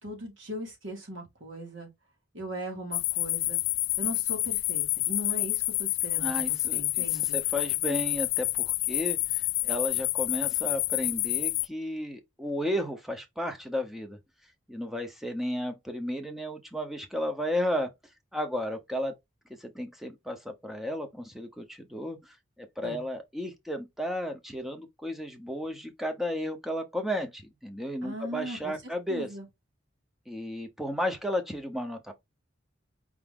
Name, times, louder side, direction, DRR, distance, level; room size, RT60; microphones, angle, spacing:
voice 1, 0.0-1.9 2.3-3.6 4.0-7.4 22.8-23.0 28.0-28.8 29.1-29.5, equal, 80° right, 2.4 m, -39 dB
sound 1, 2.9-11.7, left 20 dB, 85° left, 0.3 m, -28 dB
voice 2, 6.2-14.2 14.7-17.9 18.3-19.1 19.6-29.3 30.3-32.1, left 1 dB, ahead, 0.7 m, -33 dB
4.8 x 2.6 x 3.5 m
head